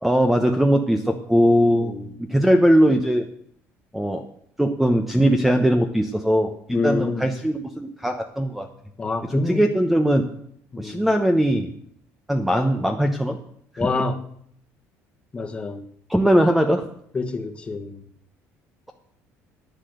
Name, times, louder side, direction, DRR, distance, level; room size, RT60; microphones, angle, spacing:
voice 1, 0.0-1.9 2.2-3.3 3.9-4.3 4.6-8.7 9.3-10.2 10.8-11.7 12.3-13.4 13.7-13.9 16.1-16.9, equal, 5° right, 6 dB, 0.9 m, -20 dB
voice 2, 1.8-2.2 6.7-7.3 9.0-9.6 10.7-11.1 13.8-14.2 15.3-15.8 17.1-18.0, left 3 dB, 20° left, 5 dB, 1.4 m, -27 dB
10.5 x 9.8 x 7.8 m, 0.67 s
cardioid pair, 140°, 6 cm